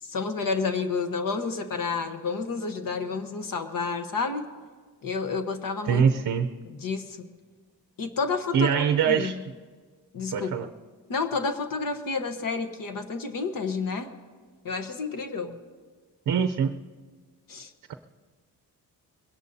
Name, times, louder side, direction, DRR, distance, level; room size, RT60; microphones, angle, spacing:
voice 1, 0.0-4.5 5.0-6.0 6.7-7.3 8.0-9.4 10.1-10.7 11.1-14.1 14.6-15.6 17.5-17.7, left 4 dB, 55° left, 7 dB, 1.2 m, -30 dB
voice 2, 5.9-6.5 8.5-9.4 10.3-10.7 16.3-16.7, right 7 dB, 50° right, 7 dB, 0.6 m, -23 dB
22.0 x 17.0 x 2.7 m, 1.5 s
cardioid pair, 125°, 40 cm